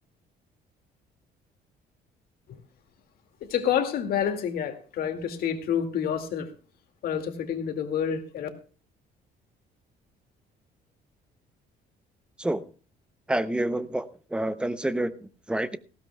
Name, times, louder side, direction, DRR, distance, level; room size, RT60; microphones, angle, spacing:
voice 1, 3.4-6.5 7.0-8.5, left 8 dB, 60° left, 6 dB, 2.2 m, -28 dB
voice 2, 12.4-12.7 13.3-15.8, right 1 dB, 5° right, 13 dB, 0.7 m, -28 dB
18.5 x 16.0 x 2.3 m, 0.37 s
cardioid pair, 145°, 17 cm